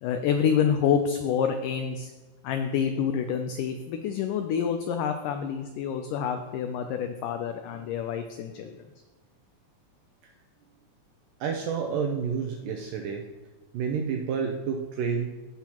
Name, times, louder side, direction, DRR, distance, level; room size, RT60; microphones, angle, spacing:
voice 1, 0.0-2.1 2.4-8.8, left 7 dB, 90° left, 6 dB, 1.8 m, -27 dB
voice 2, 11.4-13.3 13.7-15.3, right 6 dB, 80° right, 3 dB, 2.0 m, -29 dB
15.5 x 5.7 x 3.0 m, 1.2 s
omnidirectional pair, 4.4 m